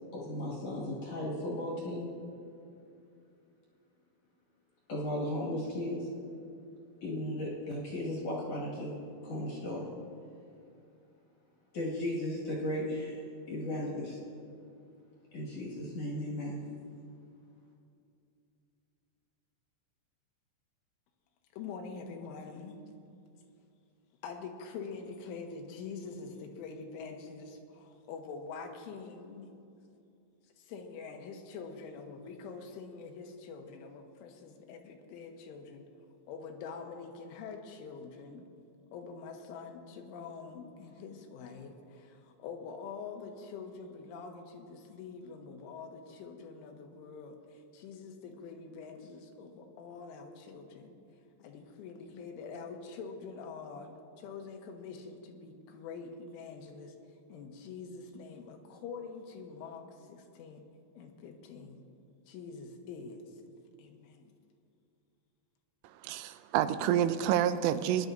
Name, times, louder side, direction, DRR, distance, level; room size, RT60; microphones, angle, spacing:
voice 1, 0.1-2.1 4.9-6.1 7.0-8.9 9.2-9.8 11.7-13.2 13.5-14.2 15.3-16.6, left 1 dB, 50° left, -4 dB, 2.2 m, -35 dB
voice 2, 21.5-22.8 24.2-29.5 30.6-35.9 36.3-38.5 38.9-51.0 51.4-57.0 57.3-60.6 61.0-61.8 62.3-63.3 63.8-64.3, left 5 dB, 90° left, 3 dB, 3.5 m, -45 dB
voice 3, 65.8-68.1, right 10 dB, 90° right, 11 dB, 3.1 m, -28 dB
21.5 x 11.0 x 2.6 m, 2.6 s
omnidirectional pair, 5.5 m